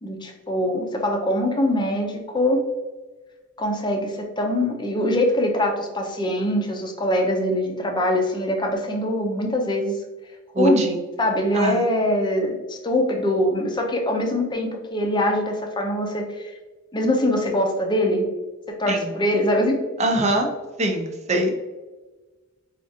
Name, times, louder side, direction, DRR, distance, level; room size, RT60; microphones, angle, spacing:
voice 1, 0.0-2.6 3.6-9.9 10.6-16.5 16.9-18.2 18.7-19.8, left 1 dB, 20° left, 2 dB, 0.5 m, -23 dB
voice 2, 10.5-10.9 11.5-11.8 18.9-19.1 20.0-20.5 20.8-21.5, right 1 dB, 35° right, 3 dB, 0.5 m, -22 dB
4.5 x 2.4 x 2.7 m, 1.2 s
head